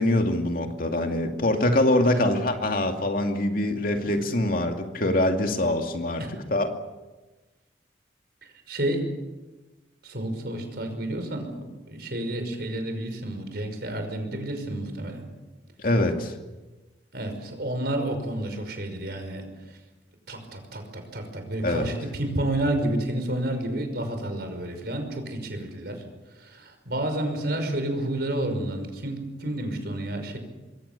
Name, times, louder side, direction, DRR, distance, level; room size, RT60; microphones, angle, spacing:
voice 1, 0.0-6.2 6.5-6.7 15.8-16.3 21.6-21.9, left 1 dB, 50° left, 4 dB, 2.5 m, -24 dB
voice 2, 8.7-9.1 10.0-11.5 11.9-15.2 17.1-19.5 20.3-26.0 26.4-30.4, right 1 dB, 60° right, 6 dB, 5.7 m, -30 dB
26.5 x 23.0 x 7.0 m, 1.1 s
head